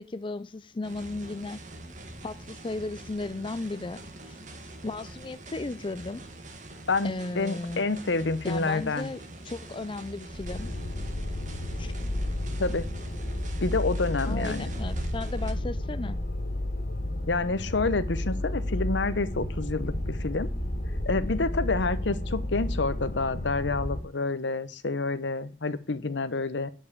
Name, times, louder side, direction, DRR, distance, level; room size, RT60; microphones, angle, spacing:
voice 1, 0.0-1.6 2.2-4.0 4.3-4.4 4.8-6.2 7.0-7.8 8.4-10.7 11.8-11.9 14.3-16.2, left 2 dB, 30° left, 0.5 m, -35 dB
sound 1, 0.8-15.5, right 2 dB, 45° right, 1.7 m, -45 dB
voice 2, 6.9-9.1 12.6-12.9 13.6-14.7 17.3-20.5 21.0-26.7, left 3 dB, 80° left, 0.9 m, -28 dB
sound 2, 10.3-24.0, left 1 dB, 50° left, 2.2 m, -32 dB
11.0 x 5.6 x 8.6 m
head